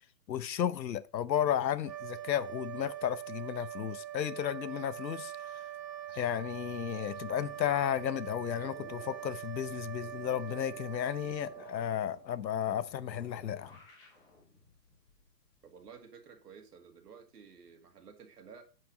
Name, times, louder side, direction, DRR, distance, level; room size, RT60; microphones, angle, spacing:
voice 1, 0.3-5.6 6.1-13.8, left 10 dB, 85° left, 0.8 m, -33 dB
sound 1, 1.8-12.4, right 12 dB, 85° right, 1.7 m, -43 dB
sound 2, 7.0-15.9, left 2 dB, 5° left, 0.9 m, -58 dB
voice 2, 15.6-18.6, right 6 dB, 65° right, 2.1 m, -53 dB
7.6 x 5.9 x 5.1 m
hypercardioid pair, 170°, 50 cm